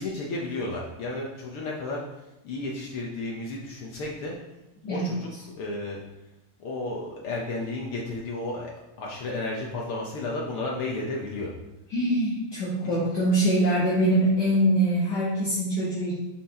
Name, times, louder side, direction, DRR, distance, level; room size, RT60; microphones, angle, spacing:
voice 1, 0.0-2.0 2.4-4.3 4.9-5.3 5.6-6.0 6.6-8.7 9.0-11.5 12.8-13.0, left 2 dB, 85° left, -2 dB, 1.2 m, -32 dB
voice 2, 11.9-16.2, right 1 dB, 40° left, -8 dB, 1.9 m, -23 dB
8.1 x 5.7 x 4.3 m, 0.96 s
omnidirectional pair, 3.9 m